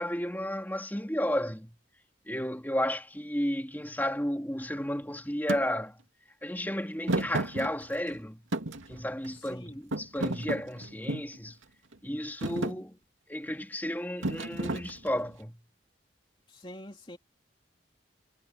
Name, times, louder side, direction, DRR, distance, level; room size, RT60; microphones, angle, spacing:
voice 1, 0.0-1.7 2.3-6.0 6.4-8.4 8.9-11.6 12.0-13.0 13.3-15.6, equal, 10° left, 3.2 m, -33 dB
Thump thud, 5.5-5.6 7.1-8.2 8.5-9.5 9.9-11.4 11.9-12.2 12.4-12.8 14.2-15.3, right 2 dB, 85° right, 2.5 m, -32 dB
voice 2, 9.3-9.8 16.5-17.2, left 1 dB, 25° left, 2.8 m, -46 dB
head